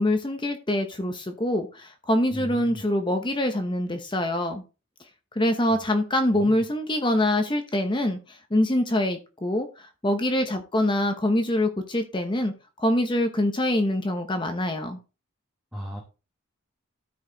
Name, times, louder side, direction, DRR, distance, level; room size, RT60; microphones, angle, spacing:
voice 1, 0.0-4.6 5.4-12.5 12.8-15.0, left 1 dB, 20° left, 0.8 m, -25 dB
voice 2, 2.3-2.8 6.4-6.6 15.7-16.0, equal, 5° right, 1.2 m, -36 dB
13.0 x 4.8 x 3.9 m
head